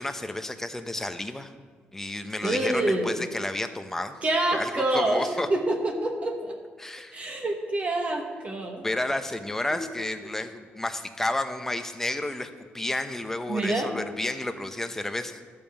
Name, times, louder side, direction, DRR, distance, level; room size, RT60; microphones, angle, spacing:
voice 1, 0.0-1.5 1.9-4.2 4.5-5.5 6.8-7.2 8.8-12.5 12.7-15.4, left 1 dB, 10° left, 8 dB, 0.8 m, -31 dB
voice 2, 2.4-3.1 4.2-6.6 7.1-8.9 9.7-9.8 10.2-10.4 13.5-13.9, right 1 dB, 35° right, 2 dB, 1.3 m, -27 dB
12.5 x 5.3 x 7.1 m, 1.5 s
cardioid pair, 110°, 4 cm